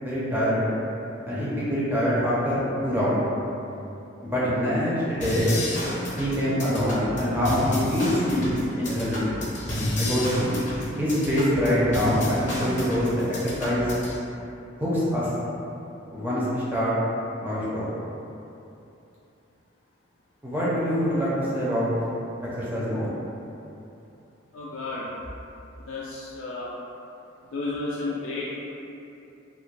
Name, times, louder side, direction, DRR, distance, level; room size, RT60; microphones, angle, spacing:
voice 1, 0.0-0.7 1.3-3.2 4.2-5.6 6.2-9.3 9.9-10.5 11.0-13.9 14.8-15.3 16.1-16.9 17.4-17.9 20.4-21.9 22.6-23.1, equal, 10° right, -9 dB, 0.5 m, -25 dB
sound 1, 5.2-14.2, left 1 dB, 35° left, 0.7 m, -31 dB
voice 2, 24.5-25.1 25.9-26.7 27.5-28.6, left 3 dB, 75° left, -6 dB, 0.3 m, -32 dB
2.4 x 2.0 x 3.1 m, 2.8 s
head